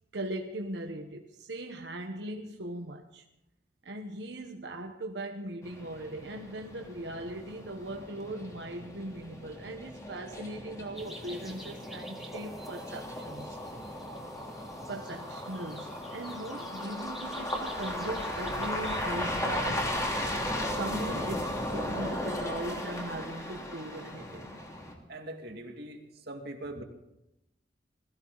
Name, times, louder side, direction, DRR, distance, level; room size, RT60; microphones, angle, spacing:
voice 1, 0.1-3.2 3.8-13.6 14.9-19.9 20.6-24.6, right 1 dB, 85° right, 2 dB, 1.3 m, -39 dB
sound 1, 5.6-24.9, left 1 dB, 20° left, 3.0 m, -36 dB
sound 2, 10.9-19.3, right 1 dB, ahead, 2.0 m, -50 dB
voice 2, 25.1-26.8, right 1 dB, 65° right, 2 dB, 2.5 m, -42 dB
21.5 x 15.5 x 4.1 m, 0.86 s
head